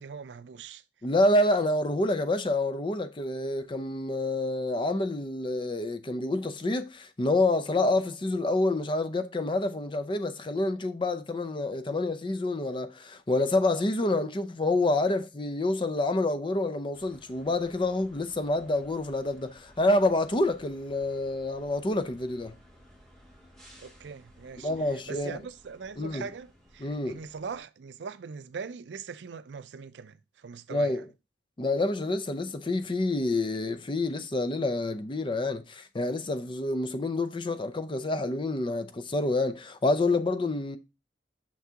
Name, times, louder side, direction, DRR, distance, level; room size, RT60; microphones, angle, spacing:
voice 1, 0.0-0.8 23.8-31.0, right 5 dB, 75° right, 0.4 m, -41 dB
voice 2, 1.0-22.5 24.6-25.4 26.0-26.3 26.8-27.2 30.7-31.1 31.6-40.8, left 2 dB, 30° left, 0.5 m, -28 dB
sound 1, 16.9-27.6, equal, ahead, 2.4 m, -56 dB
6.1 x 5.8 x 2.8 m
head